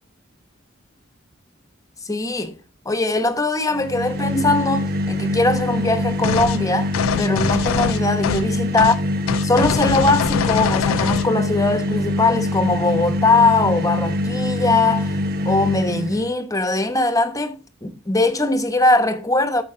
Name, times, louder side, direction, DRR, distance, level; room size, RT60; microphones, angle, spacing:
voice 1, 2.0-2.6 2.8-6.9 7.2-8.9 9.4-15.2 15.4-19.6, left 2 dB, 15° left, 1.2 m, -20 dB
sound 1, 3.7-16.3, left 1 dB, 50° right, 1.2 m, -24 dB
sound 2, 6.2-6.6 6.9-8.5 8.8-9.0 9.3-11.3, left 8 dB, 90° left, 0.4 m, -23 dB
13.5 x 5.4 x 3.9 m
head